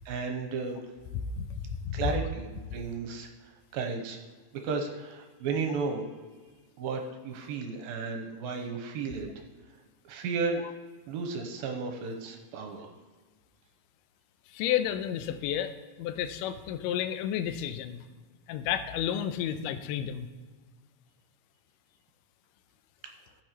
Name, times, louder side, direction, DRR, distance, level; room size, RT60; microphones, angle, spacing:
voice 1, 0.1-0.8 1.9-4.2 4.6-6.0 6.8-9.3 10.1-10.7 11.1-12.9, right 4 dB, 75° right, 4 dB, 2.5 m, -34 dB
voice 2, 1.4-2.1 14.5-18.0 18.5-20.3, left 10 dB, 85° left, 9 dB, 1.9 m, -31 dB
15.0 x 6.4 x 3.1 m, 1.4 s
omnidirectional pair, 4.5 m